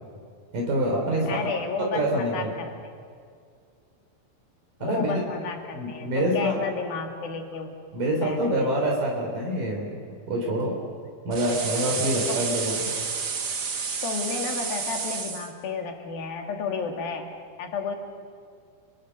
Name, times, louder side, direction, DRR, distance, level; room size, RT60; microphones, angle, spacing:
voice 1, 0.5-1.4 1.8-2.7 4.8-5.2 5.7-6.5 7.9-10.0 10.3-10.8 11.3-12.9, right 1 dB, 65° right, -1 dB, 5.3 m, -26 dB
voice 2, 1.3-2.9 4.8-7.8 8.2-8.9 12.3-12.4 14.0-17.3 17.6-18.0, left 5 dB, 80° left, 3 dB, 4.2 m, -32 dB
sound 1, 11.3-15.5, right 5 dB, 45° right, 1.5 m, -30 dB
29.5 x 26.0 x 6.7 m, 2.2 s
omnidirectional pair, 4.1 m